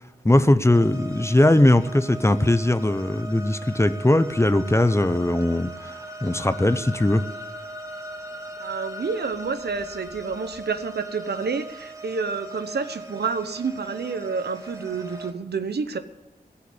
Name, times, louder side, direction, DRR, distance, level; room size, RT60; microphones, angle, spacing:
voice 1, 0.2-5.9 6.2-7.2, left 1 dB, 15° left, 12 dB, 0.8 m, -20 dB
sound 1, 0.7-15.3, right 1 dB, 20° right, 1.7 m, -39 dB
voice 2, 8.6-16.0, right 5 dB, 85° right, 10 dB, 0.9 m, -29 dB
16.0 x 5.9 x 9.7 m, 1.1 s
wide cardioid pair, 60°, 16 cm